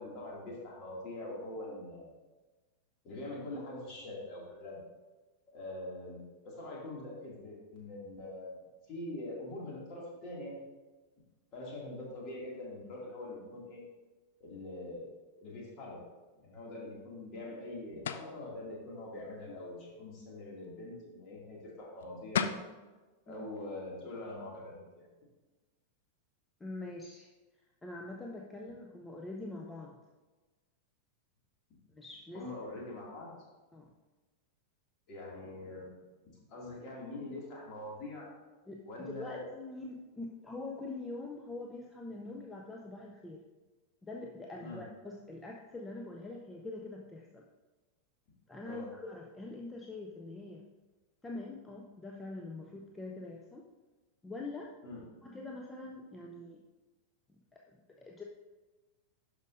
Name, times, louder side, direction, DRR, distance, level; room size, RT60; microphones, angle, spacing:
voice 1, 0.0-2.1 3.0-4.8 5.5-10.6 11.5-13.8 14.4-15.1 15.4-16.0 16.4-22.4 23.3-25.1 32.3-33.3 35.1-35.9 36.5-38.3 38.9-39.5 44.6-44.9 48.6-48.9 54.8-55.0, left 2 dB, 35° left, -3 dB, 2.3 m, -43 dB
sound 1, 18.0-18.4 22.0-22.1 22.3-22.7, left 7 dB, 60° left, 0.4 m, -32 dB
voice 2, 26.6-27.3 27.8-30.0 31.9-32.5 33.7-33.9 38.7-43.4 44.0-47.5 48.5-50.6 51.2-53.7 54.2-54.7 55.2-56.6 57.3-58.2, left 2 dB, 10° left, 0 dB, 0.6 m, -44 dB
11.5 x 5.1 x 2.6 m, 1.2 s
figure-of-eight pair, 90°, 0 cm